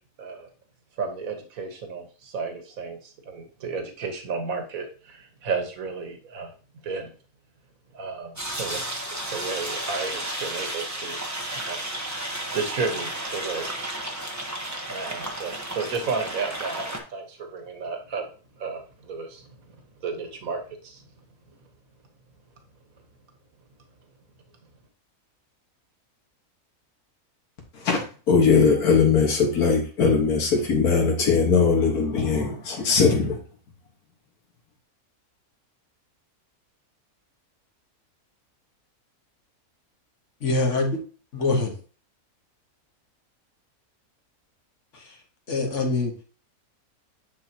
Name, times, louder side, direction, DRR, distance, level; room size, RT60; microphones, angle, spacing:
voice 1, 1.0-6.5 6.8-7.1 7.9-11.2 11.5-11.8 12.5-13.9 14.9-18.2 18.6-19.5 20.0-21.0, right 4 dB, 65° right, 1.7 m, -33 dB
sound 1, 8.4-17.0, right 1 dB, 15° right, 1.0 m, -33 dB
voice 2, 27.7-33.4, left 5 dB, 75° left, 2.1 m, -20 dB
voice 3, 40.4-40.9 41.3-41.7 44.9-45.2 45.5-46.1, left 3 dB, 55° left, 1.6 m, -24 dB
9.8 x 4.2 x 2.9 m
omnidirectional pair, 1.6 m